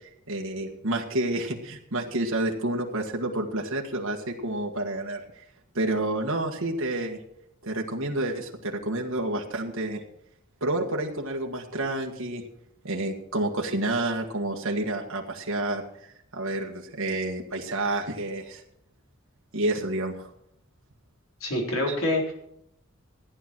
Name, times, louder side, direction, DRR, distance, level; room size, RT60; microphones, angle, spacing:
voice 1, 0.3-5.4 5.8-7.2 7.6-10.0 10.6-12.4 12.8-18.6 19.5-20.3 21.9-22.0, right 2 dB, 75° right, 0 dB, 1.7 m, -29 dB
voice 2, 21.4-22.3, left 1 dB, 85° left, -1 dB, 4.1 m, -26 dB
15.0 x 10.0 x 4.6 m, 0.73 s
head